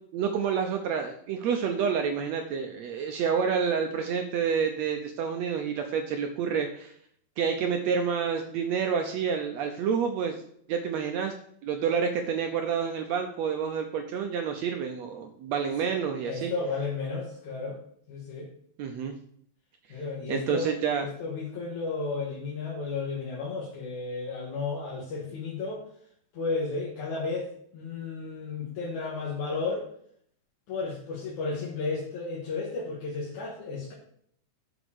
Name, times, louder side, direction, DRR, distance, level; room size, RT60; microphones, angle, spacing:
voice 1, 0.1-6.9 7.4-10.4 10.7-11.3 11.6-16.5 18.8-19.1 20.3-21.1, right 6 dB, 75° right, 5 dB, 1.7 m, -28 dB
voice 2, 16.2-17.8 18.1-18.5 19.9-25.8 26.3-29.9 30.7-33.9, left 4 dB, 70° left, -4 dB, 2.9 m, -33 dB
7.0 x 6.0 x 6.3 m, 0.65 s
omnidirectional pair, 3.7 m